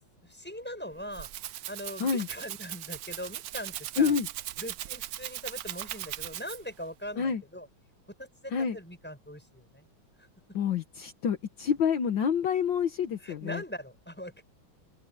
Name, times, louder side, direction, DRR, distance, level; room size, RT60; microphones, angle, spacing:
voice 1, 0.2-1.3 1.7-4.2 4.6-7.7 8.1-9.9 10.2-10.3 13.2-14.4, equal, 5° left, 7.6 m, -41 dB
Rattle (instrument), 0.9-6.8, right 13 dB, 75° right, 0.8 m, -39 dB
voice 2, 4.0-4.3 7.2-7.4 8.5-8.8 10.5-13.6, left 7 dB, 70° left, 1.9 m, -28 dB
open air
omnidirectional pair, 2.2 m